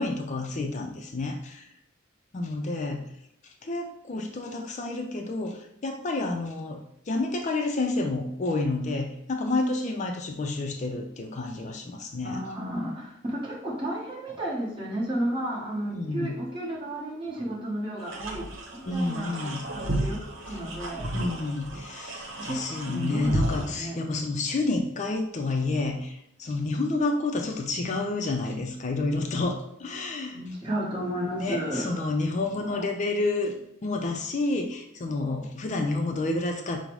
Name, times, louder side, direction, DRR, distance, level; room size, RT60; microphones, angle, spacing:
voice 1, 0.0-1.7 2.3-3.0 3.6-6.8 7.1-12.4 15.9-16.3 18.9-19.6 21.1-30.4 31.4-33.5 33.8-36.8, left 2 dB, 40° left, 3 dB, 0.4 m, -29 dB
voice 2, 12.2-21.1 22.4-24.0 30.3-32.0 32.5-32.9, right 1 dB, 25° right, -4 dB, 1.2 m, -33 dB
sound 1, 18.0-23.7, right 1 dB, 90° right, 0.8 m, -33 dB
5.2 x 2.1 x 4.6 m, 0.76 s
head